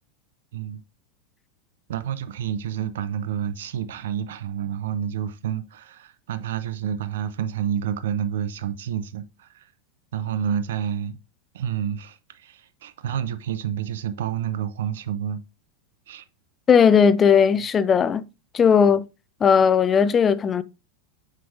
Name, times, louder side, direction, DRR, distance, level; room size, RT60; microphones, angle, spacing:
voice 1, 1.9-9.7 10.1-11.2 11.5-15.4 16.1-16.2 18.8-19.0, right 9 dB, 65° right, 0.6 m, -29 dB
voice 2, 16.7-18.3 18.5-19.0 19.4-20.6, left 7 dB, 25° left, 0.4 m, -17 dB
7.6 x 5.2 x 2.6 m
figure-of-eight pair, 90°, 0 cm